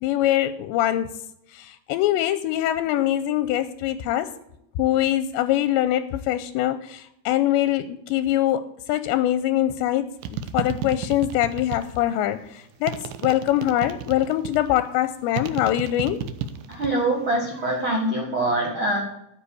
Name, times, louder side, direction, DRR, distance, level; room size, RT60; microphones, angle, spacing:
voice 1, 0.0-1.1 1.6-4.3 4.8-12.4 12.8-16.2, left 13 dB, 85° left, 12 dB, 2.8 m, -23 dB
sound 1, 10.2-12.1 12.9-14.7 15.3-17.0 17.3-17.9, right 8 dB, 85° right, 2.1 m, -32 dB
voice 2, 16.7-19.0, right 1 dB, 50° right, 0 dB, 1.5 m, -24 dB
13.0 x 7.5 x 6.8 m, 0.79 s
omnidirectional pair, 5.3 m